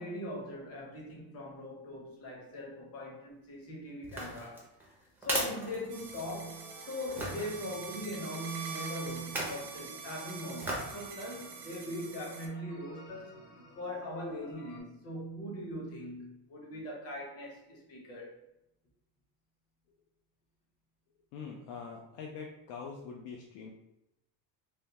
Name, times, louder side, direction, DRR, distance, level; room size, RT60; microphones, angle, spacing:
voice 1, 0.0-4.7 5.2-13.4 13.7-18.3, left 1 dB, 35° left, 0.8 m, -41 dB
sound 1, 4.0-6.5 7.2-7.5 9.2-9.7 10.6-11.0 11.5-11.6, right 1 dB, 5° right, 0.4 m, -36 dB
sound 2, 5.8-14.8, equal, 60° left, 1.4 m, -54 dB
sound 3, 5.9-12.5, right 6 dB, 50° right, 0.5 m, -45 dB
voice 2, 21.3-23.7, left 5 dB, 90° left, 0.6 m, -44 dB
3.3 x 2.2 x 2.7 m
cardioid pair, 165°, 41 cm